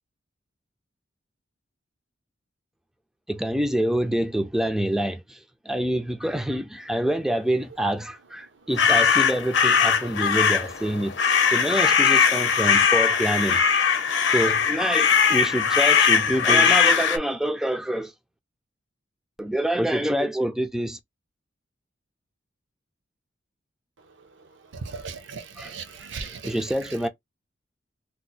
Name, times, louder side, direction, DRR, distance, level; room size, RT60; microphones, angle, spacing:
voice 1, 3.3-11.2 11.5-13.8 14.3-18.1 19.4-21.0 25.6-25.7 26.4-27.1, equal, ahead, 0.3 m, -26 dB
sound 1, 8.7-17.2, left 6 dB, 65° left, 0.6 m, -20 dB
voice 2, 24.8-26.5, right 5 dB, 70° right, 0.6 m, -37 dB
2.8 x 2.0 x 4.0 m
head